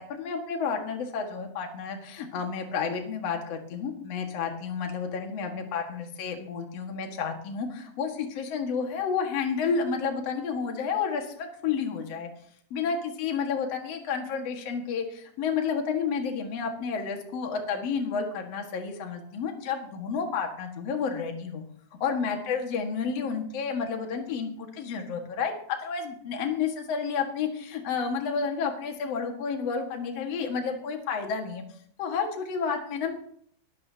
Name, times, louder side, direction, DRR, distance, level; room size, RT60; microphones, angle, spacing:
voice 1, 0.0-12.3 12.7-21.6 22.0-31.6 32.0-33.1, left 6 dB, 85° left, 3 dB, 1.4 m, -31 dB
21.5 x 12.5 x 2.8 m, 0.62 s
omnidirectional pair, 5.8 m